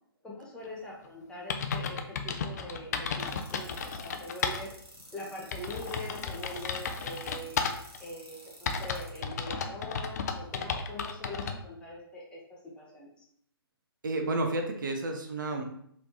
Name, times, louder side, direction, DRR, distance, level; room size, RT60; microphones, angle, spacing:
voice 1, 0.2-4.7 5.1-7.6 8.0-13.1, left 1 dB, 5° left, -5 dB, 0.7 m, -43 dB
sound 1, 1.1-1.2 1.5-4.6 5.0-5.1 5.5-8.0 8.7-11.6, left 5 dB, 40° left, 0.4 m, -34 dB
sound 2, 3.2-9.2, right 1 dB, 85° right, 1.4 m, -51 dB
voice 2, 14.0-15.6, right 2 dB, 55° right, 4 dB, 0.6 m, -31 dB
3.3 x 3.0 x 2.7 m, 0.70 s
figure-of-eight pair, 130°, 13 cm